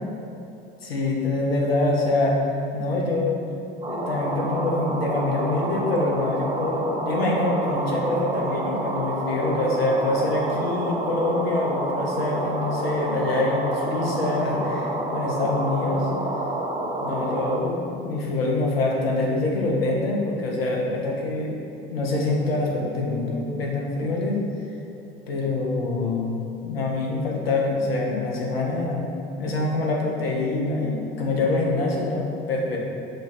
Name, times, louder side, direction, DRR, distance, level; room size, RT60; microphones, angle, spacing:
voice 1, 0.8-2.4 2.7-3.5 3.9-16.1 17.0-21.6 21.9-24.4 25.3-26.3 26.6-29.1 29.4-32.8, left 2 dB, 85° left, -2 dB, 0.7 m, -25 dB
sound 1, 3.8-17.6, right 1 dB, 15° right, 0.5 m, -29 dB
5.1 x 2.4 x 4.1 m, 2.7 s
figure-of-eight pair, 65°, 29 cm